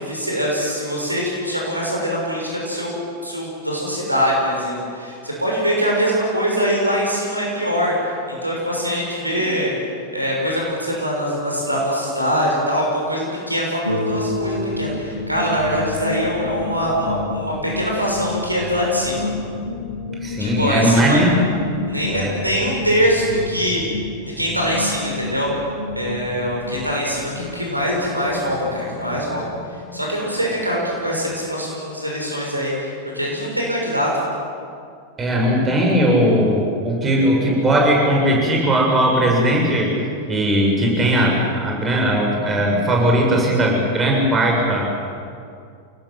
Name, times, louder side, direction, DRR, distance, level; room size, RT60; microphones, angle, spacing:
voice 1, 0.0-9.7 10.1-19.3 20.4-21.2 21.9-23.8 24.2-25.5 25.9-29.5 29.9-34.3, equal, 85° right, -2 dB, 6.6 m, -23 dB
Guitar, 13.8-18.6, left 1 dB, 85° left, 2.9 m, -30 dB
sound 1, 14.1-31.4, left 3 dB, 60° left, 3.8 m, -31 dB
voice 2, 20.2-21.4 22.1-22.4 35.2-39.9 40.3-44.9, right 1 dB, 20° right, -1 dB, 6.8 m, -18 dB
27.5 x 19.5 x 7.7 m, 2.3 s
figure-of-eight pair, 90°, 0 cm